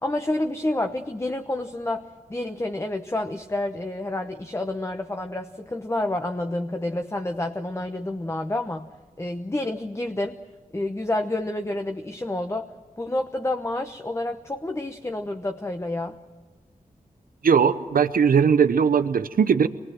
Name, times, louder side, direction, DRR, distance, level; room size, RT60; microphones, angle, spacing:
voice 1, 0.0-8.9 9.2-10.4 10.7-12.7 13.0-16.2, left 1 dB, 20° left, 6 dB, 0.9 m, -29 dB
voice 2, 17.4-19.7, right 6 dB, 75° right, 9 dB, 0.7 m, -19 dB
24.0 x 20.5 x 7.6 m, 1.3 s
cardioid pair, 60°, 15 cm